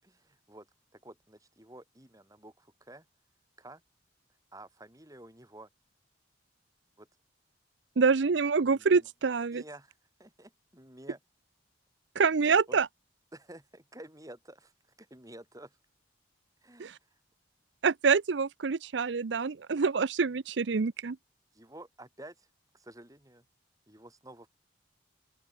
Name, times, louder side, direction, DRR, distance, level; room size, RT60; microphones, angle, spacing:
voice 1, 0.0-3.1 3.6-3.8 4.5-5.7 7.0-7.1 8.6-9.1 9.5-11.2 12.4-12.8 13.3-14.7 15.0-15.8 16.6-17.2 21.5-22.5 22.7-23.5 23.9-24.5, right 1 dB, 20° right, 7.1 m, -51 dB
voice 2, 8.0-9.6 12.2-12.9 16.8-17.0 17.8-21.2, right 5 dB, 65° right, 0.6 m, -26 dB
open air
head